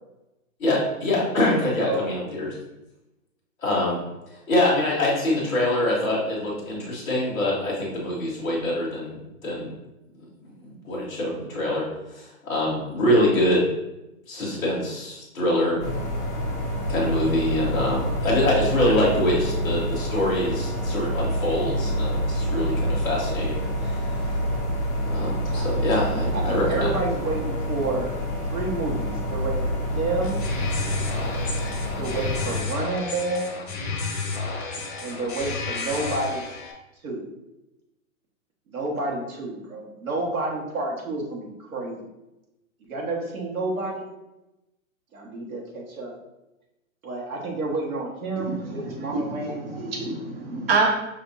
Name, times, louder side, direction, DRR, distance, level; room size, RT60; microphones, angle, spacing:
voice 1, 0.6-2.5 3.6-4.0 4.5-9.7 10.8-11.9 12.1-13.7 14.3-15.8 16.9-24.0 25.1-26.9, left 1 dB, 5° left, -13 dB, 0.8 m, -24 dB
voice 2, 1.8-2.1 25.5-28.1 28.5-30.4 32.0-33.5 35.0-36.5 37.0-37.3 38.7-42.0 42.9-44.1 45.1-46.1 47.0-49.7, right 2 dB, 85° right, -2 dB, 1.7 m, -30 dB
sound 1, 15.8-32.6, equal, 25° left, 1.4 m, -27 dB
sound 2, 30.2-36.7, left 4 dB, 45° left, 1.2 m, -31 dB
voice 3, 48.4-50.9, right 4 dB, 45° right, 0 dB, 0.8 m, -27 dB
5.7 x 3.4 x 2.7 m, 0.94 s
hypercardioid pair, 180°, 42 cm